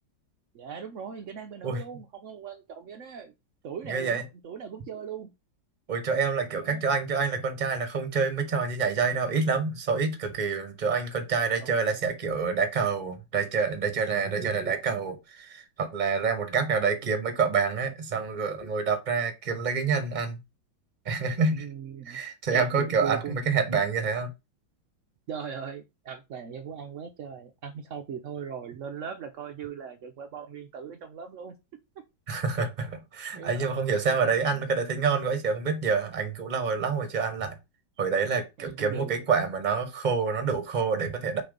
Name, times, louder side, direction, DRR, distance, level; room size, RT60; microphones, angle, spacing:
voice 1, 0.5-3.3 3.6-5.3 6.5-6.8 11.6-12.0 21.5-22.2 22.5-23.4 25.3-31.6 33.3-34.6 38.6-39.2, right 7 dB, 80° right, 0.6 m, -39 dB
voice 2, 3.8-4.2 5.9-20.4 21.0-21.6 22.1-24.3 32.3-37.6 38.0-41.4, right 5 dB, 35° right, 0.8 m, -27 dB
6.0 x 3.3 x 5.1 m
omnidirectional pair, 2.1 m